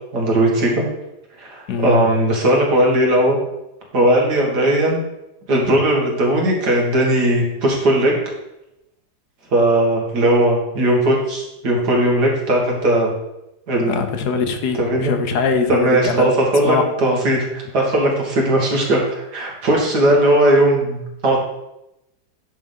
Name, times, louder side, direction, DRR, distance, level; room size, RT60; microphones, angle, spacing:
voice 1, 0.1-0.8 1.4-3.4 3.9-5.0 5.5-8.2 9.5-13.1 13.7-14.1 14.8-15.1 15.7-21.4, right 1 dB, 75° right, -1 dB, 2.4 m, -18 dB
voice 2, 1.7-2.0 5.6-5.7 13.8-16.3 16.6-16.9, left 5 dB, 75° left, 6 dB, 1.4 m, -22 dB
10.5 x 3.7 x 5.4 m, 0.89 s
omnidirectional pair, 1.7 m